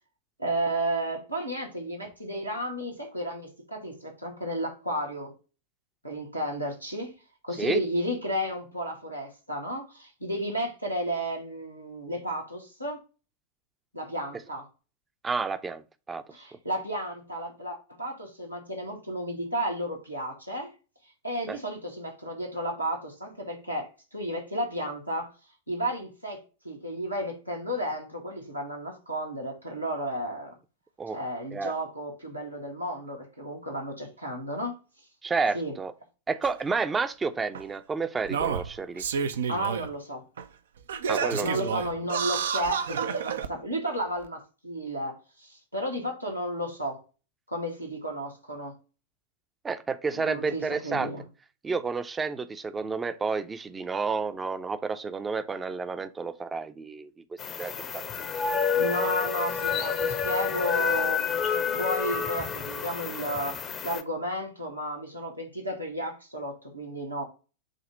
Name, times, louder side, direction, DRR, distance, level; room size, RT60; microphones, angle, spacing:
voice 1, 0.4-5.4 6.0-7.1 7.4-13.0 13.9-14.6 16.3-20.7 21.2-25.3 25.7-30.6 31.1-34.7 35.5-35.7 39.5-40.2 41.4-47.0 47.5-48.7 50.2-51.2 58.8-63.6 63.8-67.2, equal, 90° right, 2.0 m, -33 dB
voice 2, 15.2-16.2 21.5-21.6 31.0-31.2 31.5-31.7 35.2-35.9 36.3-39.0 41.1-41.7 49.6-51.1 51.6-57.1 57.6-58.0, right 4 dB, 15° right, 0.6 m, -30 dB
Singing, 36.4-36.5 37.5-37.6 38.2-39.9 40.4-40.5 40.9-43.5 44.2-44.3, right 6 dB, 65° right, 0.6 m, -30 dB
sound 1, 57.4-64.0, left 6 dB, 25° left, 0.7 m, -29 dB
7.4 x 2.8 x 5.1 m
figure-of-eight pair, 90°, 0 cm